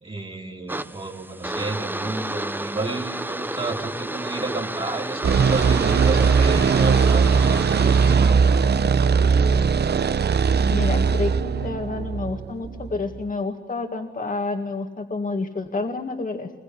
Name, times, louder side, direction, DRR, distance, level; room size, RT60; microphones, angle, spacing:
voice 1, 0.0-8.6, right 3 dB, 35° right, -2 dB, 3.3 m, -31 dB
sound 1, 0.7-8.2, right 1 dB, 10° right, 0.8 m, -32 dB
sound 2, 5.2-13.2, right 6 dB, 70° right, 0.8 m, -19 dB
voice 2, 10.7-16.5, left 3 dB, 50° left, 4 dB, 2.0 m, -29 dB
24.0 x 22.0 x 9.9 m, 1.3 s
wide cardioid pair, 90°, 17 cm